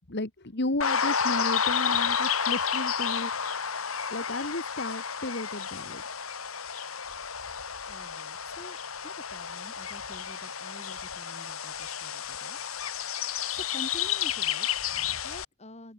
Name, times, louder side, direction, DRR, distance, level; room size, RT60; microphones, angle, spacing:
voice 1, 0.1-3.5 4.1-6.0, left 2 dB, 55° left, 2.0 m, -33 dB
sound 1, 0.8-15.5, left 7 dB, 90° left, 3.8 m, -31 dB
voice 2, 7.9-15.9, left 1 dB, 30° left, 7.7 m, -48 dB
open air
head